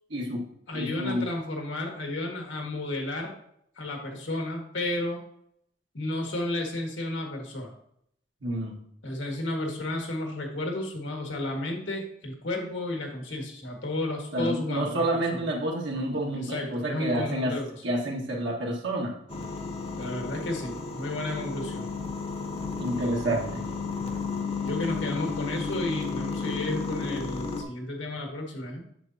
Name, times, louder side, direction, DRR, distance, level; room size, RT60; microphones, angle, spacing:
voice 1, 0.1-0.4 0.7-1.3 8.4-8.8 14.3-17.6 17.8-19.2 22.8-23.7, right 1 dB, 70° right, -2 dB, 1.7 m, -29 dB
voice 2, 0.7-3.3 3.8-5.2 5.9-7.7 9.0-15.4 16.3-17.8 20.0-21.9 24.6-28.8, left 1 dB, 75° left, 2 dB, 1.8 m, -32 dB
sound 1, 19.3-27.6, left 4 dB, 30° left, 1.0 m, -33 dB
8.1 x 7.2 x 2.8 m, 0.72 s
head